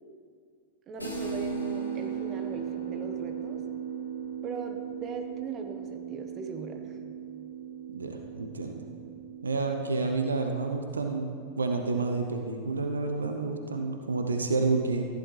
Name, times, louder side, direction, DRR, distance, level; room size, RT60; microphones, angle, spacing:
voice 1, 0.9-3.6 4.4-7.0, right 5 dB, 30° right, 5 dB, 1.2 m, -39 dB
sound 1, 1.0-10.6, right 7 dB, 85° left, 1.6 m, -37 dB
voice 2, 7.9-8.8 9.4-15.1, right 3 dB, 75° right, 4 dB, 0.8 m, -29 dB
14.5 x 10.5 x 3.3 m, 2.2 s
figure-of-eight pair, 90°, 0 cm